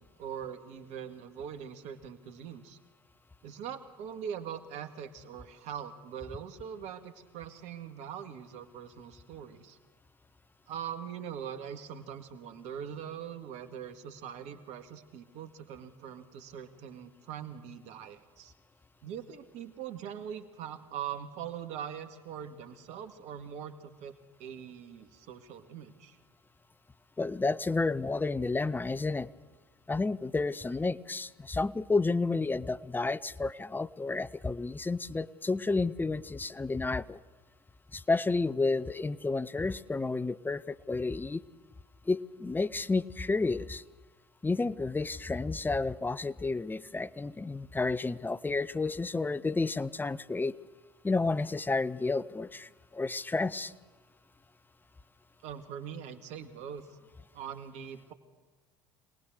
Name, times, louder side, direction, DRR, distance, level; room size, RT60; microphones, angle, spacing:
voice 1, 0.0-2.8 3.4-9.8 10.7-18.5 19.0-24.1 24.4-26.2 55.4-57.0 57.3-58.1, right 8 dB, 60° right, 8 dB, 1.9 m, -42 dB
voice 2, 27.2-29.3 29.9-37.2 37.9-41.4 42.1-43.8 44.4-50.5 51.0-53.7, left 3 dB, 15° left, 17 dB, 0.8 m, -31 dB
25.5 x 18.5 x 6.5 m, 1.3 s
hypercardioid pair, 65°, 13 cm